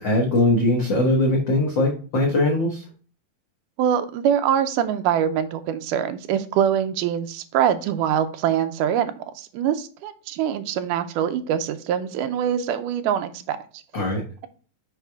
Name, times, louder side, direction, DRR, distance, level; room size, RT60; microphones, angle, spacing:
voice 1, 0.0-2.8 13.9-14.2, left 1 dB, 75° left, -1 dB, 1.0 m, -21 dB
voice 2, 3.8-13.6, right 9 dB, 80° right, 9 dB, 2.1 m, -24 dB
5.7 x 4.9 x 3.5 m, 0.40 s
omnidirectional pair, 3.7 m